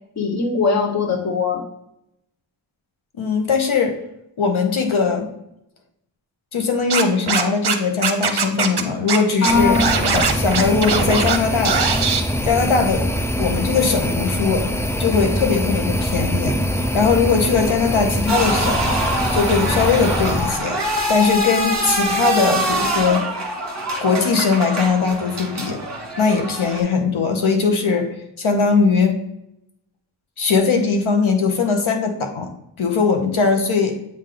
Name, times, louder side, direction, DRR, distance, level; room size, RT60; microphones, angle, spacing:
voice 1, 0.2-1.6 9.4-10.1, left 4 dB, 35° left, 3 dB, 1.0 m, -20 dB
voice 2, 3.2-4.0 4.4-5.3 6.5-9.8 10.1-11.8 12.4-13.1 13.4-14.7 15.0-16.6 16.9-18.9 19.3-20.8 21.1-23.2 24.0-25.8 26.2-28.1 28.4-29.2 30.4-32.5 32.8-33.9, left 5 dB, 75° left, 4 dB, 0.9 m, -20 dB
Scratching (performance technique), 6.9-7.7 8.0-8.8 9.1-9.2 9.4-11.4 11.6-12.2, right 6 dB, 55° right, 0.7 m, -20 dB
sound 1, 9.5-20.6, equal, 5° left, 0.3 m, -23 dB
málaga scores goal, 18.3-26.8, right 1 dB, 35° right, 1.5 m, -24 dB
8.0 x 3.3 x 3.7 m, 0.82 s
wide cardioid pair, 90°, 49 cm